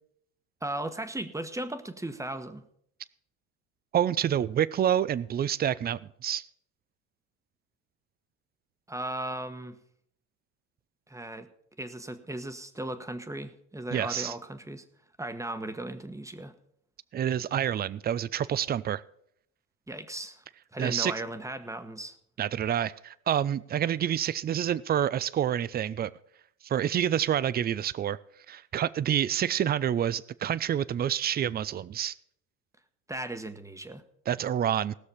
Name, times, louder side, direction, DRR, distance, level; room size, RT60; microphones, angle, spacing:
voice 1, 0.6-2.6 8.9-9.8 11.1-11.5 11.8-14.8 15.2-16.5 19.9-20.4 20.7-22.1 33.1-34.0, right 1 dB, 10° right, 1.2 m, -36 dB
voice 2, 3.9-6.4 13.9-14.3 17.1-19.0 20.8-21.1 22.4-26.1 26.6-28.2 28.5-32.1 34.3-34.9, right 10 dB, 25° right, 0.4 m, -28 dB
18.0 x 6.5 x 5.6 m
hypercardioid pair, 85°, 40 cm